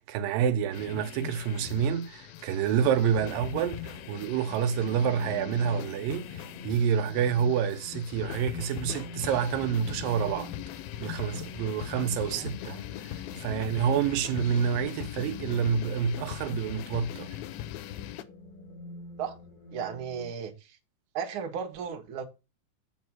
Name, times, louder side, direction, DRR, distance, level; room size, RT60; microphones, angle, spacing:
voice 1, 0.1-10.5 11.0-12.8 13.4-17.3, right 8 dB, 80° right, 2.4 m, -28 dB
sound 1, 0.7-18.2, left 12 dB, 90° left, 2.5 m, -40 dB
sound 2, 2.8-20.3, left 2 dB, 60° left, 0.5 m, -48 dB
voice 2, 19.7-20.8 21.1-22.2, right 7 dB, 55° right, 1.5 m, -35 dB
8.0 x 5.1 x 6.1 m
omnidirectional pair, 4.2 m